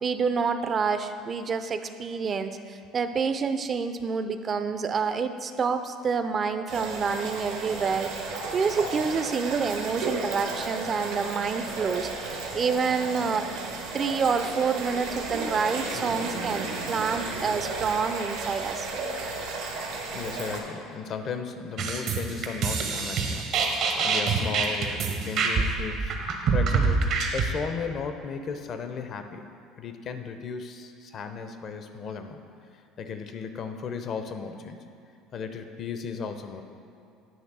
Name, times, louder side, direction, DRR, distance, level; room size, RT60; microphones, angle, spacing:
voice 1, 0.0-8.1 8.5-12.1 12.5-13.6 13.9-18.9, right 5 dB, 40° right, 9 dB, 0.5 m, -28 dB
sound 1, 6.7-20.6, right 3 dB, 80° right, 1.2 m, -33 dB
voice 2, 20.1-29.5 29.8-32.4 33.0-34.8 35.3-36.6, left 5 dB, 50° left, 7 dB, 0.6 m, -35 dB
sound 2, 21.8-27.5, right 4 dB, 60° right, 0.9 m, -26 dB
9.2 x 3.2 x 6.1 m, 2.6 s
supercardioid pair, 80°, 0 cm